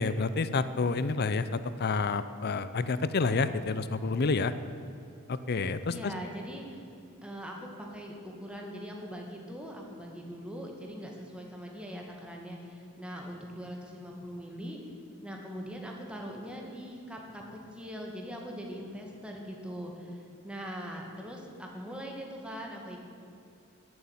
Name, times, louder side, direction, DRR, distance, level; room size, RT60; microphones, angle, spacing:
voice 1, 0.0-4.5 5.3-6.1, left 4 dB, 50° left, 13 dB, 0.6 m, -29 dB
voice 2, 5.9-6.8 7.2-14.8 15.2-23.0, equal, 5° right, 0 dB, 2.1 m, -41 dB
14.0 x 7.8 x 9.7 m, 2.6 s
head